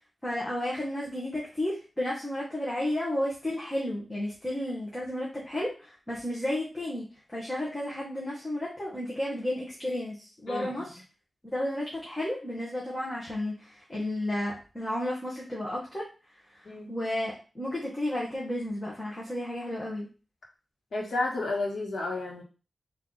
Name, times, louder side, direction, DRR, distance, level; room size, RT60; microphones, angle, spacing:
voice 1, 0.2-11.0 11.5-16.1 16.5-20.1, left 1 dB, 20° left, -6 dB, 1.4 m, -32 dB
voice 2, 10.5-10.9 16.6-16.9 20.9-22.4, left 2 dB, 85° left, -1 dB, 1.5 m, -31 dB
4.3 x 2.9 x 4.0 m, 0.34 s
wide cardioid pair, 110°, 0 cm